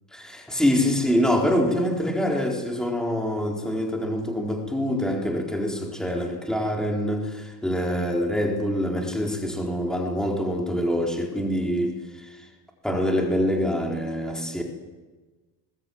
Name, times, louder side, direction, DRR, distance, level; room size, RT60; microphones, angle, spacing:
voice 1, 0.1-12.5 12.8-14.6, equal, ahead, 0 dB, 4.2 m, -25 dB
22.5 x 21.0 x 9.5 m, 1.2 s
cardioid pair, 155°, 37 cm